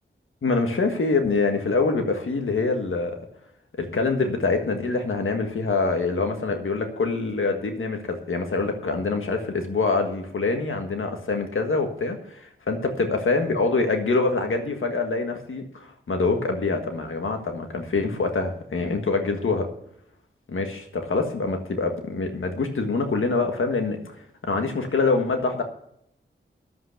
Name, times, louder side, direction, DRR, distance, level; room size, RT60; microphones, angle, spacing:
voice 1, 0.4-3.2 3.8-19.7 20.5-25.6, left 3 dB, 75° left, 4 dB, 1.6 m, -25 dB
11.0 x 8.1 x 6.6 m, 0.73 s
wide cardioid pair, 80°, 21 cm